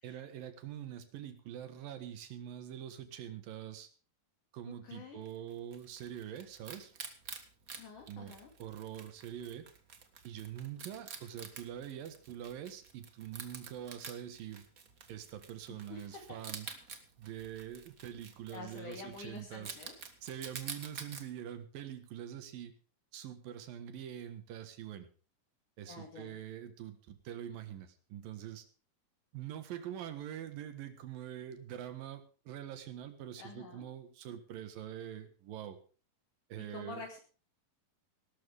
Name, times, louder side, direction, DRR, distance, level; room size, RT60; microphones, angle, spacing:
voice 1, 0.0-3.9 4.5-6.9 8.1-9.7 10.2-14.7 15.1-16.7 17.2-19.8 20.2-22.7 23.1-25.1 25.8-28.7 29.3-35.8 36.5-37.1, right 10 dB, 75° right, 10 dB, 3.2 m, -44 dB
voice 2, 4.8-5.2 7.7-8.5 15.7-16.2 18.5-19.9 25.9-26.4 33.4-33.9 36.7-37.2, left 4 dB, 60° left, 1 dB, 3.8 m, -48 dB
Wild animals, 5.3-21.2, right 5 dB, 55° right, 0.9 m, -49 dB
18.5 x 12.5 x 3.6 m, 0.37 s
omnidirectional pair, 4.1 m